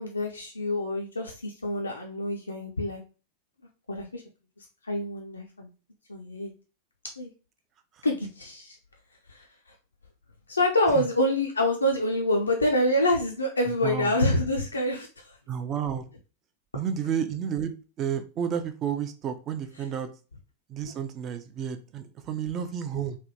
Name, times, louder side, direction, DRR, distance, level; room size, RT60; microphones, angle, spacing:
voice 1, 0.0-3.0 3.9-4.2 4.8-5.7 6.1-6.5 7.2-7.3 8.0-8.8 9.3-9.5 10.5-15.4, left 1 dB, 80° left, 1 dB, 0.3 m, -26 dB
voice 2, 13.8-14.1 15.5-16.0 16.7-17.7 18.0-20.1 20.7-23.2, right 8 dB, 30° right, 9 dB, 0.4 m, -31 dB
3.2 x 2.2 x 2.7 m, 0.35 s
figure-of-eight pair, 90°, 0 cm